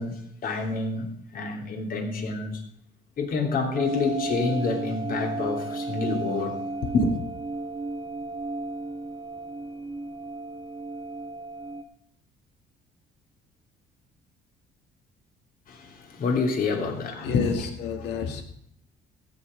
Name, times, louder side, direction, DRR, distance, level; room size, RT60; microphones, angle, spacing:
voice 1, 0.0-2.6 3.2-6.6 6.9-7.1 15.7-17.7, left 4 dB, 55° left, 3 dB, 3.1 m, -27 dB
sound 1, 3.8-11.8, right 2 dB, 25° right, 1.5 m, -34 dB
voice 2, 17.2-18.4, left 7 dB, 85° left, 5 dB, 2.2 m, -31 dB
15.5 x 8.8 x 5.2 m, 0.69 s
cardioid pair, 110°, 17 cm